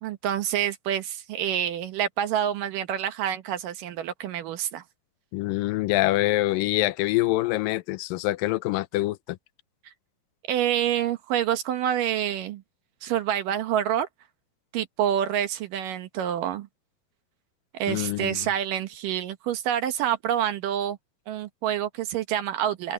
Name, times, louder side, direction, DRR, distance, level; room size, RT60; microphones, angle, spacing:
voice 1, 0.0-4.8 9.9-10.0 10.5-12.6 13.0-14.1 14.7-16.7 17.7-21.0 21.3-22.9, right 10 dB, 70° right, 2.6 m, -27 dB
voice 2, 5.3-9.4 17.9-18.4, left 18 dB, 80° left, 2.2 m, -25 dB
open air
omnidirectional pair, 4.2 m